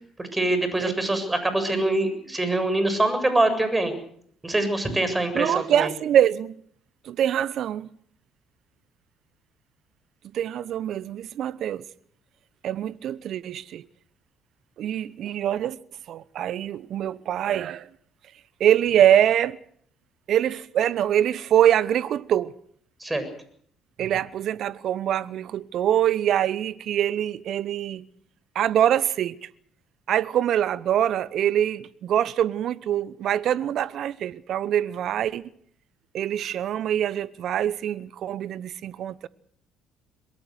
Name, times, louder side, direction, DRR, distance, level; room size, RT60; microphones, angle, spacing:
voice 1, 0.2-3.9 4.4-5.9 23.0-23.3, right 2 dB, 15° right, 7.4 m, -24 dB
voice 2, 5.3-6.5 7.0-7.9 10.3-11.9 12.6-13.9 14.8-15.8 16.1-17.9 18.6-19.6 20.3-22.5 24.0-28.1 28.5-29.5 30.1-35.4 36.1-39.3, right 10 dB, 60° right, 0.9 m, -24 dB
23.0 x 21.0 x 6.5 m
hypercardioid pair, 55°, 0 cm